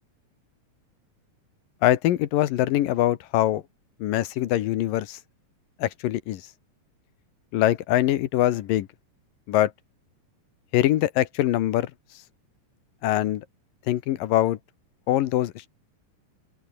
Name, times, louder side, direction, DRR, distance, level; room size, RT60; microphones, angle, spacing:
voice 1, 1.8-3.6 4.0-5.2 5.8-6.4 7.5-8.9 9.5-9.7 10.7-11.9 13.0-13.4 13.9-14.6 15.1-15.7, left 14 dB, 85° left, 2.9 m, -23 dB
open air
omnidirectional pair, 3.8 m